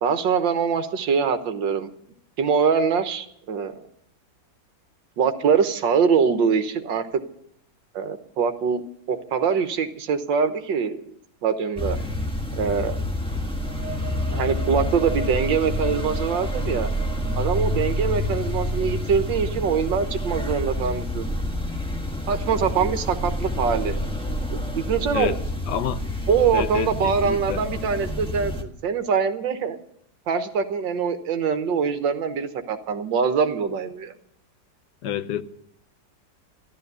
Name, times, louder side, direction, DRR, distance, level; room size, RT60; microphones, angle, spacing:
voice 1, 0.0-1.9 2.4-3.8 5.2-7.1 7.9-8.8 9.1-11.0 11.4-12.0 12.6-13.0 14.3-16.9 17.4-21.3 22.3-23.9 24.5-25.4 26.3-29.8 30.3-34.1, right 6 dB, 80° right, 1.9 m, -23 dB
sound 1, 11.8-28.6, left 1 dB, 5° left, 1.2 m, -28 dB
sound 2, 13.4-21.0, right 5 dB, 55° right, 0.9 m, -41 dB
voice 2, 25.7-26.0 26.5-27.6 35.0-35.4, left 9 dB, 70° left, 1.4 m, -28 dB
13.5 x 12.5 x 6.8 m
omnidirectional pair, 2.0 m